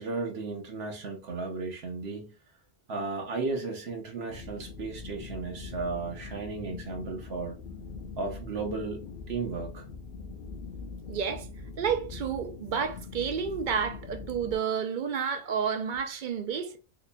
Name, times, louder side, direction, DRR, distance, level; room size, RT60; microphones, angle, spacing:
voice 1, 0.0-2.3 2.9-7.5 8.2-9.8, right 3 dB, 75° right, 1.0 m, -35 dB
sound 1, 4.3-14.6, left 4 dB, 65° left, 0.8 m, -42 dB
voice 2, 11.1-11.5 11.8-16.8, right 7 dB, 55° right, 0.6 m, -30 dB
3.8 x 3.0 x 2.2 m
omnidirectional pair, 1.1 m